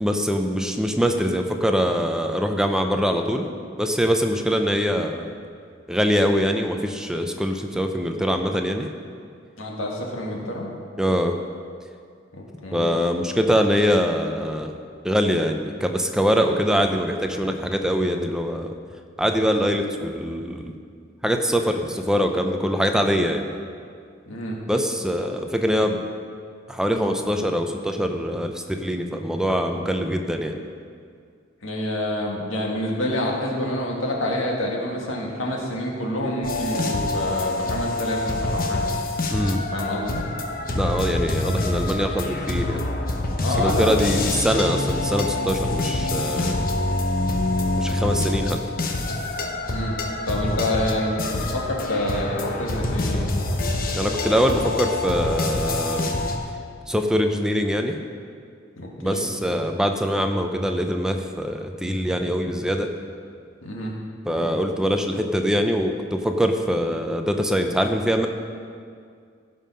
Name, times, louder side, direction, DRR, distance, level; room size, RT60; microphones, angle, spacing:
voice 1, 0.0-3.5 3.8-5.3 5.9-8.9 11.0-11.3 12.7-14.7 15.0-18.7 19.2-20.7 21.2-23.5 24.7-26.0 26.7-30.6 39.3-39.6 40.7-42.8 43.6-46.6 47.8-48.6 53.9-56.1 56.9-58.0 59.0-62.9 64.3-68.3, equal, 5° right, 4 dB, 0.5 m, -23 dB
voice 2, 9.6-10.7 12.3-12.9 22.2-22.3 24.3-24.6 31.6-38.9 39.7-40.2 43.4-44.4 49.7-50.0 50.3-53.3 58.8-59.2 63.6-63.9, left 1 dB, 90° left, -2 dB, 2.0 m, -27 dB
sound 1, 36.4-56.4, left 2 dB, 45° left, 1.0 m, -26 dB
16.0 x 5.5 x 5.5 m, 2.2 s
head